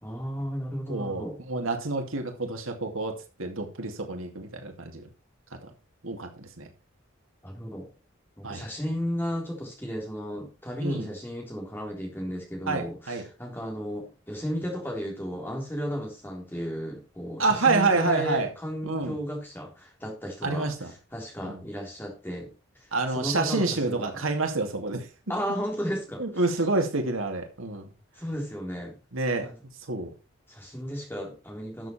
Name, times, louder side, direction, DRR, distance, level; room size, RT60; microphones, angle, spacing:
voice 1, 0.0-1.4 7.4-7.9 8.4-20.7 21.1-24.2 25.3-26.2 28.2-29.0 29.4-29.6 30.5-31.9, equal, 10° left, 0 dB, 3.6 m, -34 dB
voice 2, 0.9-3.1 3.4-5.1 5.6-5.7 6.0-6.7 8.4-8.7 10.8-11.1 12.7-13.2 17.4-18.5 18.8-19.2 20.4-20.9 21.4-21.6 22.9-25.1 26.2-27.8 29.1-29.5 29.9-30.1, right 3 dB, 80° right, 4 dB, 2.6 m, -28 dB
12.5 x 7.3 x 4.4 m, 0.30 s
head